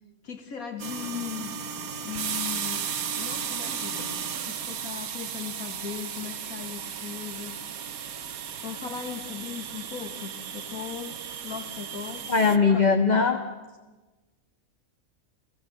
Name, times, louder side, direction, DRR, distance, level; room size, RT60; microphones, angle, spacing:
voice 1, 0.2-1.5 2.0-2.8 3.2-7.6 8.0-8.1 8.6-11.2 11.4-12.9, left 8 dB, 80° left, 6 dB, 2.3 m, -38 dB
sound 1, 0.8-12.6, right 7 dB, 80° right, 1.5 m, -35 dB
voice 2, 12.3-13.4, left 4 dB, 30° left, 5 dB, 1.4 m, -20 dB
30.0 x 17.0 x 8.0 m, 1.2 s
omnidirectional pair, 1.5 m